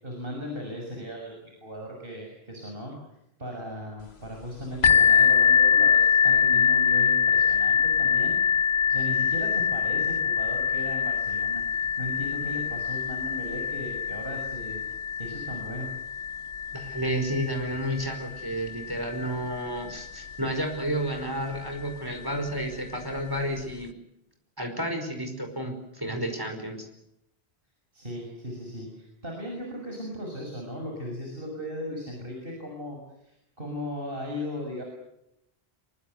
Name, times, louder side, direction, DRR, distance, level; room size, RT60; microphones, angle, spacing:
voice 1, 0.0-2.9 3.4-8.5 8.9-14.8 15.1-15.9 27.9-34.8, equal, 60° right, 1 dB, 6.6 m, -37 dB
sound 1, 4.8-20.4 21.1-21.2 21.8-21.9, left 7 dB, 80° left, 1.4 m, -24 dB
voice 2, 16.7-23.9 24.6-26.9, equal, 20° right, 4 dB, 5.1 m, -31 dB
25.5 x 23.5 x 8.0 m, 0.82 s
omnidirectional pair, 1.1 m